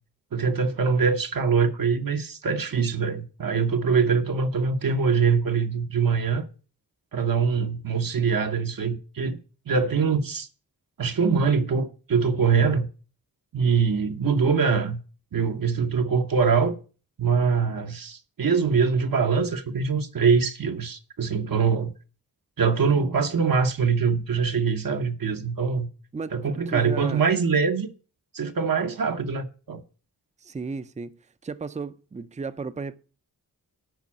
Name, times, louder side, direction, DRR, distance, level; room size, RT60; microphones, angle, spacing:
voice 1, 0.3-6.5 7.1-9.4 9.7-10.5 11.0-12.9 13.5-15.0 15.3-16.8 17.2-21.9 22.6-25.9 26.3-27.9 28.3-29.8, right 5 dB, 70° right, 1.0 m, -23 dB
voice 2, 26.7-27.2 30.4-33.0, right 4 dB, 20° right, 0.5 m, -34 dB
9.1 x 5.4 x 7.2 m
wide cardioid pair, 130°, 35 cm